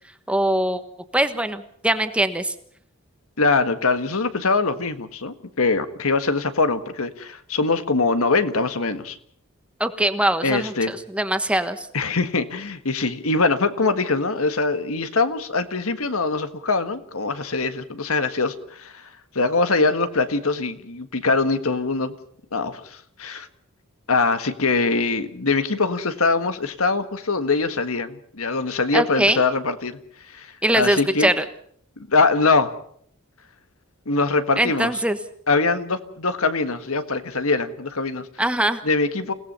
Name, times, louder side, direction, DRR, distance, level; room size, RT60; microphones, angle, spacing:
voice 1, 0.3-0.8 1.1-2.5 9.8-11.9 28.9-29.4 30.6-31.4 34.6-35.2 38.4-38.8, right 1 dB, 5° right, 9 dB, 1.3 m, -22 dB
voice 2, 3.4-9.2 10.4-10.9 11.9-19.1 19.3-22.2 22.5-23.5 24.1-30.0 30.3-31.3 32.0-32.7 34.0-34.9 35.5-38.3 38.8-39.3, left 3 dB, 70° left, 10 dB, 1.6 m, -23 dB
29.0 x 17.5 x 5.6 m, 0.62 s
head